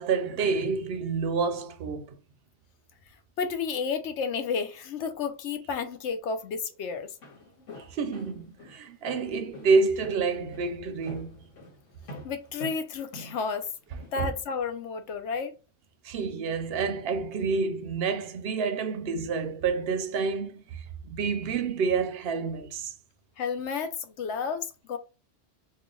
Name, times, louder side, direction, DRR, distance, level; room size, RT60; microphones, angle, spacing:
voice 1, 0.0-2.1 7.9-11.4 14.2-14.3 16.0-22.9, right 4 dB, 65° right, 0.7 m, -28 dB
voice 2, 3.4-7.1 12.2-13.7 14.1-15.5 23.4-25.0, left 5 dB, 70° left, 0.9 m, -31 dB
Walk footsteps, 7.0-14.2, left 1 dB, 85° left, 1.5 m, -46 dB
3.2 x 2.3 x 3.7 m
omnidirectional pair, 1.2 m